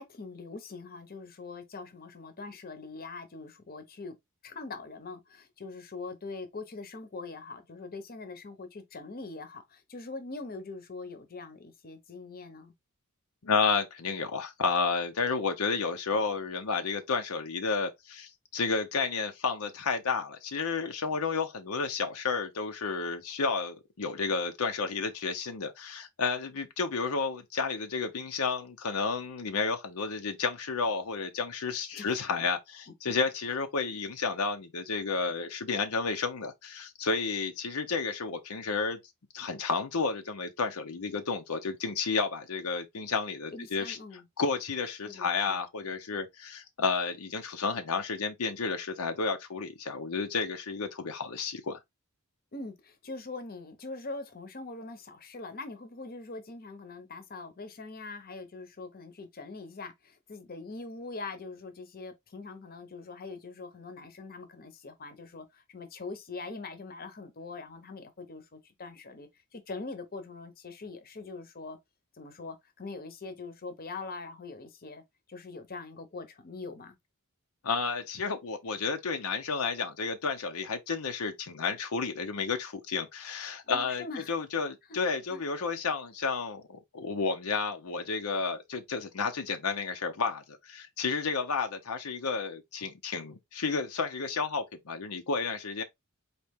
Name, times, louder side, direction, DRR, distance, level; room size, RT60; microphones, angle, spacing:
voice 1, 0.0-4.1 4.4-12.7 31.9-32.1 32.4-32.5 33.1-33.2 43.5-44.2 45.0-45.6 52.5-71.8 72.2-75.0 75.3-77.0 83.7-84.3 85.3-85.4, left 3 dB, 45° left, 0.9 m, -43 dB
voice 2, 13.4-39.0 39.3-44.0 44.4-51.8 77.6-95.8, left 4 dB, 85° left, 0.7 m, -31 dB
4.3 x 2.9 x 3.5 m
head